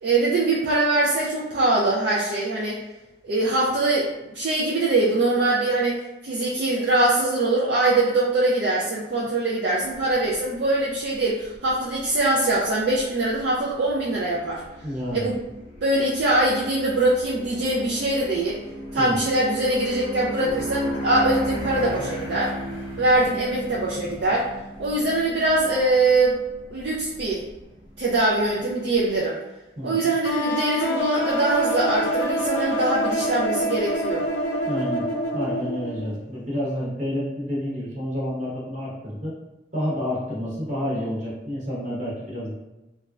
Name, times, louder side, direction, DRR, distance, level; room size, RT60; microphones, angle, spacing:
voice 1, 0.0-2.8 3.2-14.6 15.1-15.4 15.8-18.6 18.9-22.5 23.0-24.5 24.8-26.4 26.7-27.4 28.0-29.4 29.8-34.3, right 2 dB, 65° right, -5 dB, 0.4 m, -22 dB
sound 1, 9.9-29.2, equal, 30° left, 0.7 m, -36 dB
voice 2, 14.8-15.2 19.0-19.1 29.8-30.0 34.6-35.0 35.3-39.3 39.7-42.5, equal, 40° right, -6 dB, 1.0 m, -29 dB
sound 2, 30.2-36.1, equal, 85° left, 0.4 m, -26 dB
3.0 x 2.3 x 2.3 m, 1.0 s
head